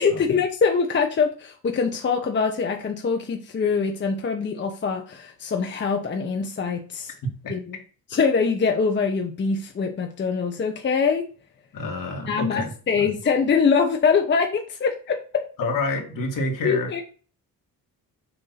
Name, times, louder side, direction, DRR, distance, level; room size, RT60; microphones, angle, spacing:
voice 1, 0.0-7.1 7.5-7.8 8.1-11.3 12.2-15.4 16.6-17.0, left 5 dB, 30° left, 0.7 m, -23 dB
voice 2, 11.7-13.1 15.6-16.9, left 2 dB, 60° left, 1.8 m, -28 dB
6.8 x 2.6 x 5.6 m
cardioid pair, 130°, 37 cm